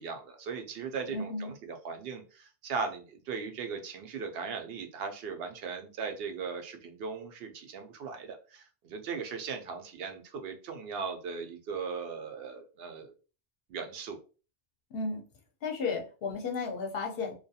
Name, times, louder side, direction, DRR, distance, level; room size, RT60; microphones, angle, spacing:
voice 1, 0.0-13.1 13.7-14.2, right 5 dB, 70° right, 6 dB, 0.8 m, -38 dB
voice 2, 1.1-1.5 14.9-15.2 15.6-17.3, left 4 dB, 65° left, 2 dB, 0.9 m, -33 dB
2.3 x 2.2 x 2.7 m, 0.35 s
omnidirectional pair, 1.1 m